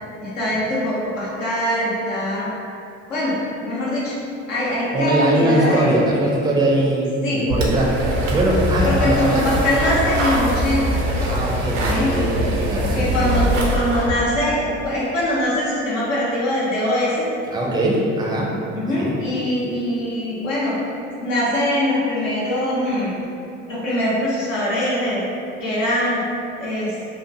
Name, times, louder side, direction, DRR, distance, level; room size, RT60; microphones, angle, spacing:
voice 1, 0.2-2.5 3.1-3.3 3.6-4.1 4.5-5.9 7.2-7.4 8.8-11.1 11.9-12.1 12.9-17.3 18.7-20.7 21.2-23.1 23.7-25.2 25.6-26.2 26.6-27.0, left 1 dB, 80° left, -7 dB, 0.7 m, -22 dB
voice 2, 4.9-9.4 11.2-13.3 17.5-18.5 19.0-19.2, right 1 dB, 10° right, -3 dB, 0.4 m, -21 dB
sound 1, 7.5-14.1, right 1 dB, 80° right, 0.5 m, -22 dB
2.9 x 2.1 x 2.5 m, 2.6 s
figure-of-eight pair, 60°, 38 cm